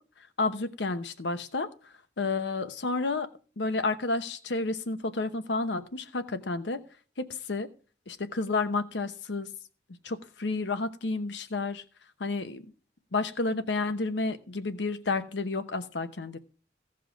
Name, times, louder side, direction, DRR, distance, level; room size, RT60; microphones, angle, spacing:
voice 1, 0.4-1.7 2.2-3.3 3.6-6.8 7.2-7.7 8.1-9.5 10.0-11.8 12.2-12.6 13.1-16.4, left 3 dB, 80° left, 11 dB, 0.9 m, -30 dB
16.0 x 5.4 x 5.1 m, 0.38 s
head